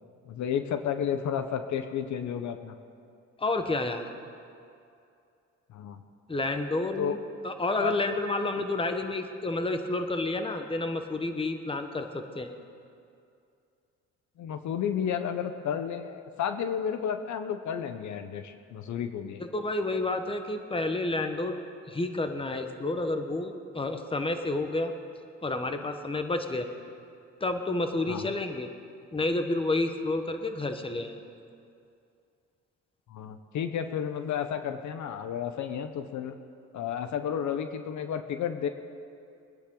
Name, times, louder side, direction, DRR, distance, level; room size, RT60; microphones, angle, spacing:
voice 1, 0.3-2.7 5.7-6.0 7.0-7.2 7.8-8.0 14.4-19.4 28.1-28.3 33.1-36.4 36.7-38.7, left 8 dB, 70° left, 8 dB, 0.9 m, -32 dB
voice 2, 3.4-4.0 6.3-7.2 7.4-12.5 19.4-21.6 21.9-24.9 25.4-26.7 27.4-28.7 29.1-31.2, left 2 dB, 20° left, 6 dB, 1.2 m, -30 dB
22.0 x 10.0 x 3.9 m, 2.5 s
cardioid pair, 90°, 30 cm